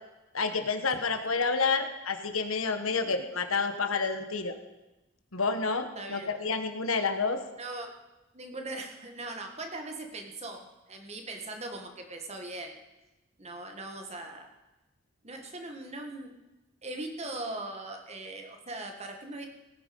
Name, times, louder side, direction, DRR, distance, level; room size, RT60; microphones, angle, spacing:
voice 1, 0.3-4.6 5.3-7.4, left 4 dB, 90° left, 7 dB, 1.3 m, -29 dB
voice 2, 5.9-6.6 7.6-7.9 8.3-12.8 13.4-14.5 15.2-16.3 16.8-19.5, right 2 dB, 30° right, 4 dB, 1.8 m, -40 dB
17.5 x 9.3 x 5.4 m, 1.0 s
head